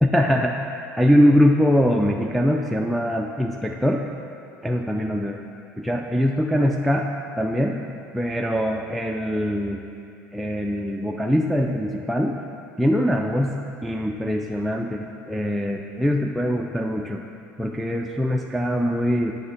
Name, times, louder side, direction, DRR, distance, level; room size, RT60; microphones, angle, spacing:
voice 1, 0.0-4.0 4.6-5.4 5.8-7.1 7.4-7.8 8.1-9.8 10.3-12.4 12.8-13.6 13.8-17.2 17.6-19.3, equal, ahead, 1 dB, 0.3 m, -22 dB
8.6 x 3.4 x 5.1 m, 2.6 s
figure-of-eight pair, 65°, 9 cm